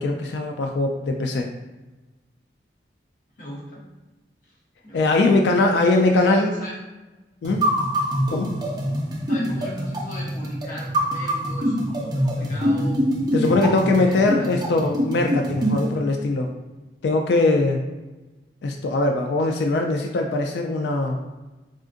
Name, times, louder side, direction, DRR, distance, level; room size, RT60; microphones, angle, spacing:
voice 1, 0.0-1.5 4.9-6.6 7.4-7.7 8.3-8.5 13.3-16.5 17.0-17.8 18.6-21.2, left 2 dB, 75° left, 3 dB, 0.3 m, -21 dB
voice 2, 3.4-3.9 4.5-4.6 4.8-6.8 9.3-13.0 13.4-14.6, equal, 45° left, -4 dB, 0.8 m, -38 dB
sound 1, 7.4-15.9, equal, 25° right, 0.4 m, -24 dB
3.6 x 2.4 x 2.5 m, 1.1 s
head